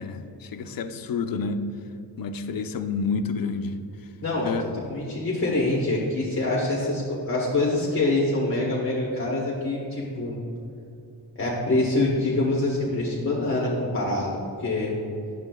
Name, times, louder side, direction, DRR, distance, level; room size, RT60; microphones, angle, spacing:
voice 1, 0.0-1.6 2.2-3.7 4.4-4.7, left 5 dB, 55° left, 8 dB, 0.5 m, -29 dB
voice 2, 4.2-10.4 11.4-15.0, left 2 dB, 30° left, -5 dB, 1.0 m, -25 dB
11.0 x 7.0 x 2.2 m, 2.6 s
wide cardioid pair, 180°, 42 cm